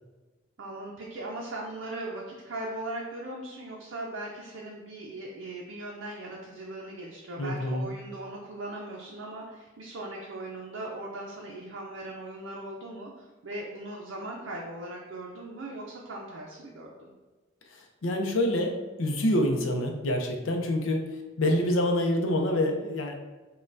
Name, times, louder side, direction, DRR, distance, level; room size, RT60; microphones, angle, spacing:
voice 1, 0.6-17.1, right 2 dB, 70° right, -2 dB, 0.5 m, -39 dB
voice 2, 7.4-7.9 17.7-21.0 21.4-23.1, left 1 dB, 75° left, 3 dB, 0.5 m, -26 dB
5.2 x 2.2 x 2.6 m, 1.2 s
head